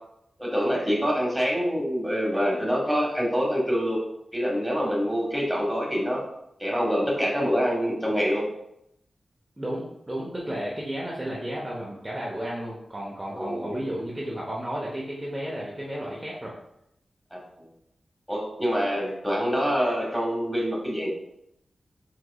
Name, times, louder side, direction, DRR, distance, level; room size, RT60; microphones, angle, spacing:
voice 1, 0.4-4.0 4.3-6.2 6.6-8.5 13.4-13.8 17.3-17.4 18.3-21.1, equal, 5° right, -3 dB, 1.6 m, -25 dB
voice 2, 9.6-16.5, equal, 20° right, -4 dB, 0.9 m, -33 dB
4.7 x 3.8 x 2.3 m, 0.80 s
cardioid pair, 50°, 0 cm